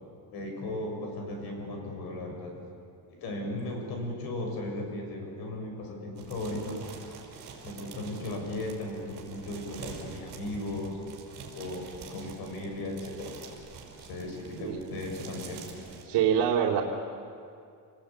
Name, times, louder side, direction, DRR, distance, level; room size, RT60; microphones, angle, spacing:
voice 1, 0.3-2.5 3.2-6.8 7.6-11.0 11.5-13.4 14.0-16.2, left 1 dB, 65° left, 2 dB, 6.4 m, -36 dB
sound 1, 6.2-16.0, right 6 dB, 50° right, 5.4 m, -46 dB
voice 2, 16.0-16.8, right 9 dB, 80° right, -2 dB, 2.7 m, -25 dB
29.0 x 20.0 x 8.9 m, 2.4 s
cardioid pair, 175°, 40 cm